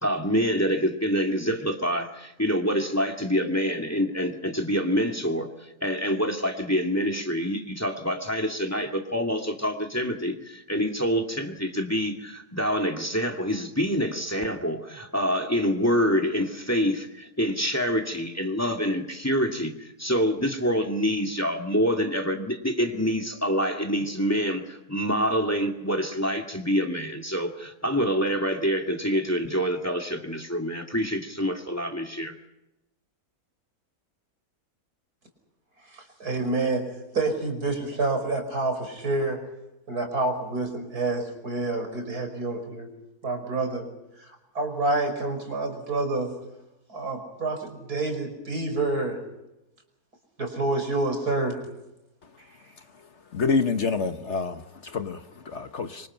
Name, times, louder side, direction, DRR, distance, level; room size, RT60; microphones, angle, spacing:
voice 1, 0.0-32.4, equal, 10° left, 2.4 m, -26 dB
voice 2, 35.9-36.8 37.1-39.4 39.9-42.9 43.2-43.8 44.5-46.3 46.9-49.2 50.4-51.6, right 2 dB, 85° right, 5.7 m, -28 dB
voice 3, 53.3-56.1, left 4 dB, 50° left, 1.4 m, -27 dB
26.0 x 25.5 x 5.8 m
omnidirectional pair, 1.6 m